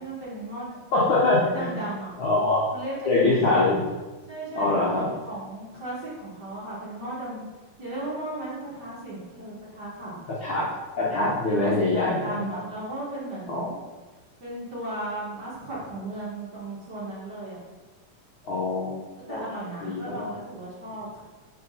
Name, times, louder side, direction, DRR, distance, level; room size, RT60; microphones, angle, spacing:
voice 1, 0.0-0.8 1.5-2.1 2.7-3.6 4.3-7.4 7.8-10.1 11.3-13.7 14.4-17.6 19.2-21.2, right 1 dB, 45° right, -8 dB, 1.5 m, -36 dB
voice 2, 0.9-1.7 2.2-2.6 3.0-3.8 4.5-5.1 10.4-10.6 11.0-12.4 13.5-13.6 18.4-19.0 19.3-19.4 19.8-20.3, left 2 dB, 75° left, -5 dB, 1.1 m, -23 dB
4.6 x 4.6 x 5.4 m, 1.3 s
omnidirectional pair, 3.5 m